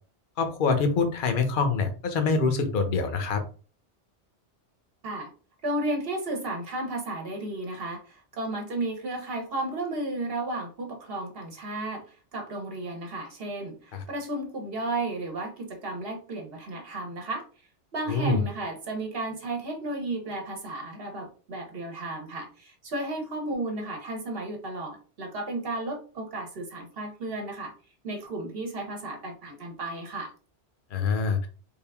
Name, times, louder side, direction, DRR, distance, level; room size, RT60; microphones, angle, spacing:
voice 1, 0.4-3.4 13.9-14.0 18.1-18.4 30.9-31.4, left 4 dB, 55° left, 7 dB, 0.8 m, -25 dB
voice 2, 5.6-12.0 12.3-17.5 17.9-27.7 28.0-30.3, right 2 dB, 60° right, 2 dB, 1.1 m, -33 dB
3.6 x 2.4 x 3.4 m, 0.38 s
omnidirectional pair, 1.2 m